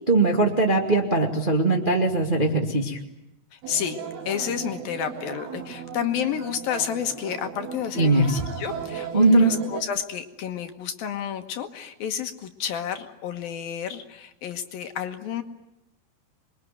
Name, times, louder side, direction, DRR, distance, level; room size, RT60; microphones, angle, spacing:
voice 1, 0.1-3.0 7.9-8.3 9.1-9.5, right 2 dB, 20° right, 1 dB, 1.4 m, -20 dB
voice 2, 3.5-15.4, left 9 dB, 65° left, 6 dB, 2.8 m, -30 dB
sound 1, 3.6-9.8, right 7 dB, 70° right, 4.5 m, -36 dB
27.0 x 22.5 x 9.3 m, 0.88 s
omnidirectional pair, 4.9 m